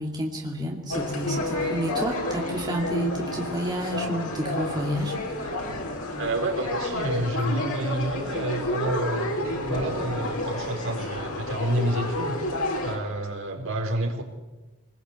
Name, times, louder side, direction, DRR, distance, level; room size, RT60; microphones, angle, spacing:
voice 1, 0.0-5.5, equal, 20° right, -1 dB, 2.6 m, -30 dB
sound 1, 0.9-12.9, left 1 dB, 85° left, 5.4 m, -30 dB
voice 2, 6.2-12.4 12.8-14.2, right 1 dB, 60° right, 2 dB, 4.3 m, -29 dB
25.0 x 20.5 x 8.3 m, 1.2 s
head